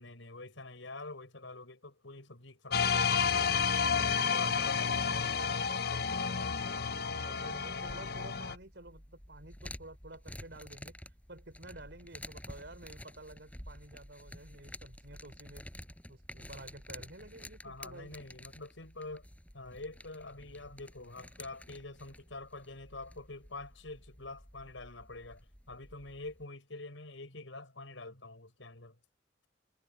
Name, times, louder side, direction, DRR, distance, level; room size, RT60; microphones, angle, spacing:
voice 1, 0.0-3.6 4.0-5.3 17.6-19.3 19.5-29.0, left 2 dB, 90° left, 5.6 m, -46 dB
sound 1, 2.7-8.6, left 6 dB, 55° left, 0.8 m, -31 dB
voice 2, 7.0-15.7 16.1-18.1, right 2 dB, 65° right, 5.2 m, -51 dB
sound 2, 7.4-26.4, left 1 dB, 10° left, 7.6 m, -51 dB
head